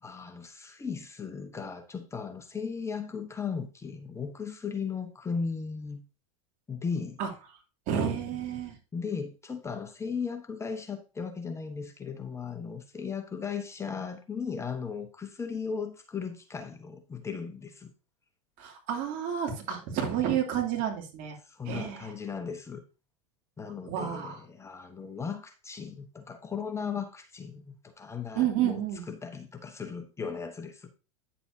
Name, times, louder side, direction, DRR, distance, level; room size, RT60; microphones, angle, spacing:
voice 1, 0.0-6.0 6.7-7.2 8.9-17.9 21.4-22.8 23.6-28.8 29.1-30.9, left 6 dB, 15° left, 1.1 m, -36 dB
voice 2, 7.9-8.7 18.6-21.4 21.6-22.1 23.9-24.4 28.3-29.0, right 9 dB, 50° right, 2.8 m, -30 dB
9.7 x 7.0 x 2.8 m
hypercardioid pair, 100°, 17 cm